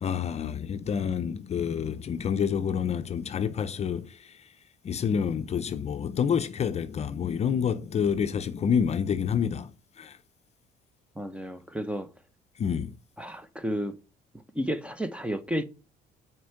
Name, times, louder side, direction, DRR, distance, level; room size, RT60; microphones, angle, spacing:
voice 1, 0.0-4.4 4.8-9.7 10.0-10.2 12.6-12.9, left 7 dB, 40° left, 0.6 m, -28 dB
voice 2, 11.2-12.1 13.2-13.9 14.5-15.7, equal, 5° right, 0.7 m, -32 dB
6.1 x 4.5 x 5.8 m
cardioid pair, 110°, 17 cm